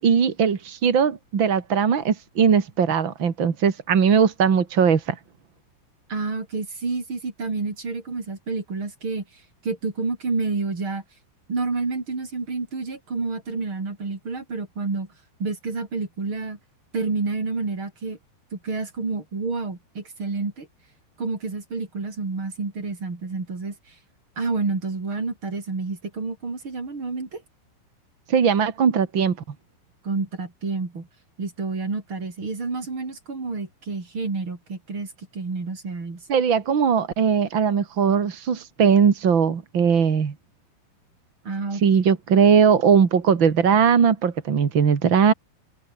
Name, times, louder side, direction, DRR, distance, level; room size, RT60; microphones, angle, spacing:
voice 1, 0.0-5.1 28.3-29.4 36.3-40.3 41.8-45.3, right 6 dB, 50° right, 1.5 m, -19 dB
voice 2, 6.1-9.2 9.6-11.0 11.5-15.1 15.4-16.6 16.9-18.2 18.5-20.7 21.2-23.9 24.4-27.4 30.0-31.1 31.4-36.2 41.4-41.8, right 4 dB, 25° right, 5.0 m, -29 dB
omnidirectional pair, 5.5 m